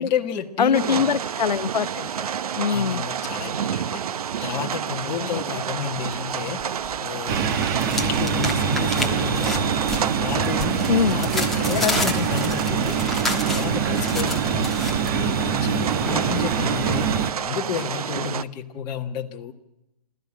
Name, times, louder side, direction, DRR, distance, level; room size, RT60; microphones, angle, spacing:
voice 1, 0.0-1.0 2.7-6.6 7.0-9.7 10.2-13.0 13.3-14.7 15.1-19.5, left 8 dB, 20° left, 2 dB, 1.5 m, -31 dB
voice 2, 0.6-2.3 2.6-3.1 5.1-5.4 10.9-11.2, left 7 dB, 80° left, 12 dB, 0.9 m, -23 dB
sound 1, 0.7-18.4, right 8 dB, 60° right, 0.7 m, -30 dB
sound 2, 6.1-7.0 7.3-15.1, left 2 dB, ahead, 1.4 m, -31 dB
sound 3, 7.3-17.3, right 6 dB, 30° right, 1.2 m, -24 dB
28.0 x 14.0 x 8.7 m, 0.93 s
hypercardioid pair, 150°, 21 cm